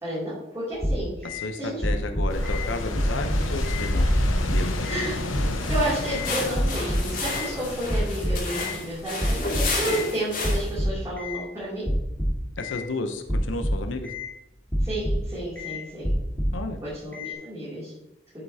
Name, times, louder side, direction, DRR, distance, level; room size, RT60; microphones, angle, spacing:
voice 1, 0.0-1.3 1.6-1.8 4.0-4.1 4.9-5.2 5.7-11.9 14.8-16.1 16.8-17.9, right 1 dB, 15° right, -11 dB, 2.7 m, -31 dB
sound 1, 0.8-1.5 1.8-2.7 3.0-3.9 4.2-5.1 5.4-6.3 6.5-7.5 7.9-8.7 9.2-10.0 10.4-11.4 11.9-12.8 13.3-14.3 14.7-15.3 15.6-15.8 16.0-16.6 17.1-17.3, equal, 10° left, 1.8 m, -27 dB
voice 2, 1.2-4.1 4.5-4.7 12.6-14.1 16.5-16.8, left 2 dB, 75° left, 6 dB, 0.7 m, -32 dB
sound 2, 2.3-8.4, left 1 dB, 90° left, 1.1 m, -29 dB
sound 3, 5.6-10.8, left 3 dB, 40° left, 2.5 m, -32 dB
8.1 x 8.0 x 2.8 m, 0.91 s
head